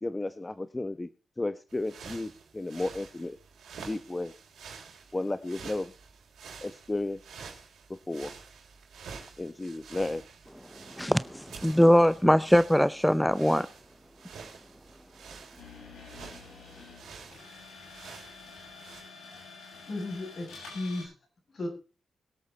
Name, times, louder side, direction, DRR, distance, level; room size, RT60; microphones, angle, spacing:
voice 1, 0.0-1.1 1.4-3.4 3.9-4.3 5.1-5.9 6.6-7.2 7.9-8.3 9.4-10.2, left 2 dB, 25° left, 1.0 m, -33 dB
sound 1, 1.7-19.0, right 5 dB, 80° right, 3.7 m, -49 dB
voice 2, 11.0-13.7, equal, 5° left, 0.6 m, -22 dB
sound 2, 15.6-21.0, left 4 dB, 85° left, 6.7 m, -48 dB
voice 3, 19.8-21.1 21.5-21.7, left 2 dB, 60° left, 7.0 m, -36 dB
22.0 x 8.1 x 4.0 m
supercardioid pair, 50°, 0 cm